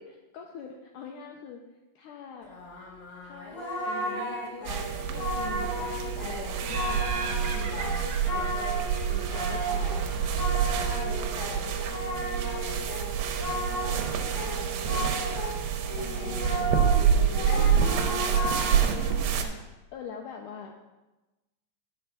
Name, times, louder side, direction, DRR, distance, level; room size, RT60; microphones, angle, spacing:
voice 1, 0.3-1.6 2.0-2.5 3.2-3.6 3.8-8.5 9.1-11.2 11.7-11.8 14.3-15.3 16.2-16.9 18.9-19.6 19.9-20.7, left 7 dB, 90° left, 2 dB, 1.8 m, -44 dB
Singing, 2.5-15.6 15.9-19.1, equal, 45° left, 2.4 m, -34 dB
sound 1, 4.7-19.4, right 8 dB, 85° right, 2.7 m, -27 dB
Laughter, 6.6-9.9, right 4 dB, 65° right, 1.8 m, -39 dB
voice 2, 9.5-10.0 11.1-12.2 12.4-15.5 16.0-19.4 20.7-20.8, left 5 dB, 75° left, -1 dB, 2.3 m, -45 dB
9.5 x 5.8 x 5.9 m, 1.1 s
omnidirectional pair, 4.4 m